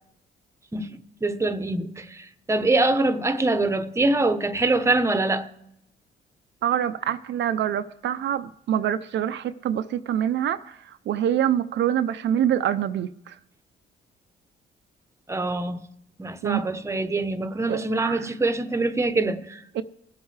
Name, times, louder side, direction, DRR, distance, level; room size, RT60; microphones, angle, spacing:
voice 1, 0.7-5.5 15.3-15.8 16.2-19.6, right 2 dB, 15° right, 0.9 m, -24 dB
voice 2, 6.6-10.8 11.1-13.4 16.4-16.7 17.7-18.3 19.7-19.8, right 10 dB, 65° right, 0.6 m, -25 dB
19.5 x 8.1 x 3.3 m
cardioid pair, 90°, 20 cm